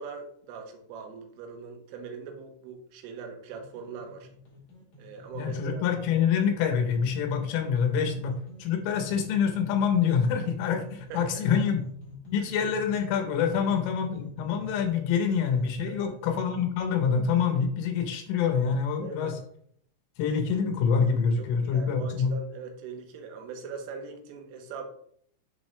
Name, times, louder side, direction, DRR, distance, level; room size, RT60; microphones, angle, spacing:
voice 1, 0.0-4.3 5.0-5.8 8.1-8.2 11.1-11.3 12.4-12.5 13.5-13.7 15.9-16.2 19.0-19.4 21.4-24.9, right 5 dB, 85° right, 3 dB, 3.6 m, -41 dB
sound 1, 3.5-16.6, left 2 dB, 45° left, 3.0 m, -47 dB
voice 2, 5.4-8.3 8.6-11.8 12.3-19.3 20.2-22.3, left 6 dB, 85° left, 5 dB, 3.6 m, -26 dB
10.5 x 3.7 x 3.3 m, 0.64 s
omnidirectional pair, 5.7 m